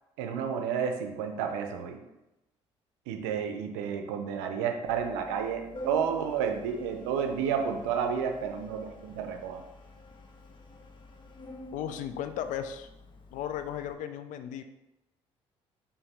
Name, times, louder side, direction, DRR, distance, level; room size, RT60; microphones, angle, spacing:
voice 1, 0.2-2.0 3.1-9.6, right 7 dB, 85° right, 5 dB, 0.5 m, -31 dB
Organ, 4.9-13.9, left 1 dB, 35° left, 0.7 m, -49 dB
voice 2, 11.7-12.9 13.3-14.6, left 9 dB, 70° left, 9 dB, 0.4 m, -35 dB
4.7 x 2.6 x 3.3 m, 0.94 s
hypercardioid pair, 60°, 14 cm